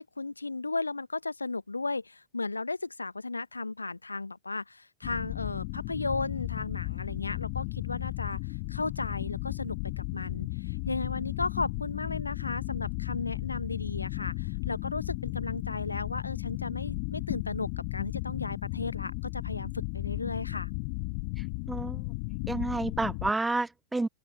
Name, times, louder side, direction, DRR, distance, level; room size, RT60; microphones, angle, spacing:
voice 1, 0.0-20.7, left 3 dB, 80° left, 1.3 m, -35 dB
sound 1, 5.0-23.3, left 35 dB, 45° left, 2.0 m, -35 dB
voice 2, 21.7-22.0 22.5-24.1, right 2 dB, 10° right, 0.8 m, -30 dB
open air
figure-of-eight pair, 90°, 0 cm